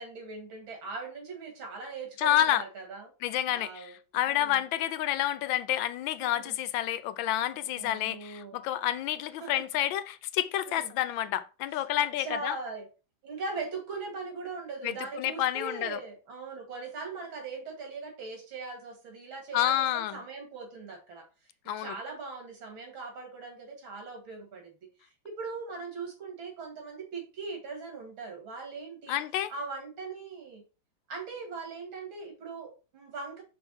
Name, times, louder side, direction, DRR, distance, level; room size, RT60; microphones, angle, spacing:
voice 1, 0.0-3.1 3.5-3.9 4.3-4.6 6.2-6.5 7.8-8.6 9.4-9.5 10.7-10.9 12.0-12.9 13.2-21.3 21.8-24.9 25.2-29.2 29.5-30.6 31.1-33.4, right 4 dB, 90° right, 2.9 m, -40 dB
voice 2, 2.2-2.6 3.2-12.6 14.8-16.0 19.5-20.2 21.7-22.0 29.1-29.5, left 12 dB, 80° left, 1.3 m, -29 dB
5.9 x 3.4 x 5.3 m
omnidirectional pair, 2.1 m